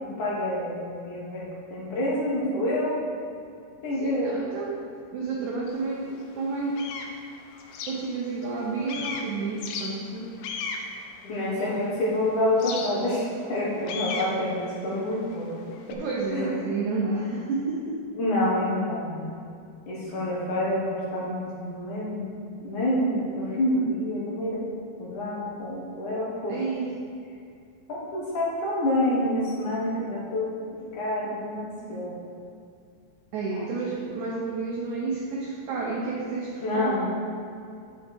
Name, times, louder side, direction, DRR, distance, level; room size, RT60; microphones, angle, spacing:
voice 1, 0.0-2.9 3.8-4.3 11.2-15.5 16.3-16.5 18.2-19.3 19.9-22.3 22.6-24.6 25.0-26.6 28.1-30.5 30.9-32.1 33.5-33.6 36.6-37.1, left 1 dB, 60° left, -6 dB, 2.5 m, -27 dB
voice 2, 3.9-6.8 7.7-10.3 15.9-18.0 26.5-27.0 33.3-37.0, right 3 dB, 85° right, -3 dB, 1.7 m, -31 dB
sound 1, 5.7-5.8 6.3-8.6 8.9-12.0 12.6-15.9, left 4 dB, 75° left, 2.3 m, -36 dB
9.5 x 7.2 x 4.5 m, 2.4 s
omnidirectional pair, 4.7 m